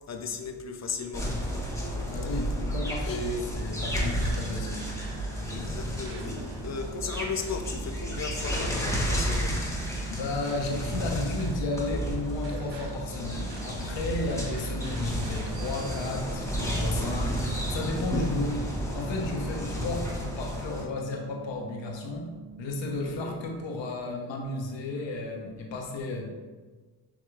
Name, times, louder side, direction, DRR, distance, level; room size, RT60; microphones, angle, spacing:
voice 1, 0.1-1.3 3.0-3.5 5.5-6.3 6.6-9.6 23.0-23.4, left 4 dB, 35° left, 6 dB, 0.6 m, -35 dB
sound 1, 1.1-20.8, equal, 5° left, 1.1 m, -32 dB
sound 2, 1.5-16.1, right 2 dB, 65° right, 1.0 m, -40 dB
voice 2, 2.0-4.8 10.1-18.6 18.9-26.2, left 2 dB, 75° left, 1 dB, 1.0 m, -33 dB
sound 3, 4.4-23.1, right 9 dB, 40° right, 0.8 m, -48 dB
7.1 x 2.9 x 2.4 m, 1.4 s
supercardioid pair, 60°, 45 cm